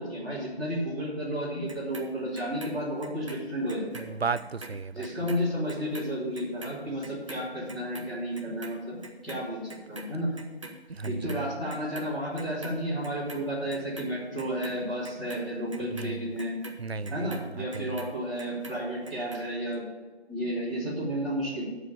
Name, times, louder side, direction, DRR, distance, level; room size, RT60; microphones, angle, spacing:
voice 1, 0.0-4.0 4.9-10.3 11.0-16.5 17.1-19.8 20.3-21.6, equal, ahead, -15 dB, 1.5 m, -32 dB
Clock, 1.7-4.1 4.3-10.8 11.0-12.1 12.4-13.4 13.7-18.1 18.4-19.4 19.7-19.8, right 2 dB, 30° right, 1.2 m, -44 dB
voice 2, 3.9-5.1 10.9-11.4 16.0-16.2 16.8-17.3 17.7-18.0, right 4 dB, 70° right, 15 dB, 0.6 m, -34 dB
13.0 x 5.0 x 8.1 m, 1.2 s
figure-of-eight pair, 160°, 32 cm